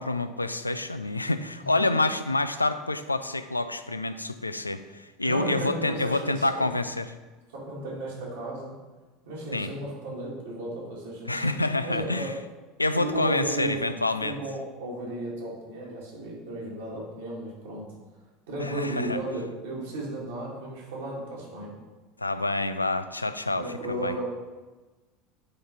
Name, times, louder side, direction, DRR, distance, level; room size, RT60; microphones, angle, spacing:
voice 1, 0.0-7.1 9.5-9.7 11.3-12.3 12.8-14.4 18.6-19.2 22.2-24.2, left 2 dB, 85° left, 11 dB, 0.3 m, -27 dB
voice 2, 5.2-6.7 7.5-8.8 9.3-11.6 11.8-12.3 13.0-13.9 14.2-17.9 18.5-21.7 23.6-24.2, right 1 dB, 65° right, -4 dB, 2.3 m, -34 dB
9.8 x 4.0 x 4.4 m, 1.2 s
figure-of-eight pair, 75°, 0 cm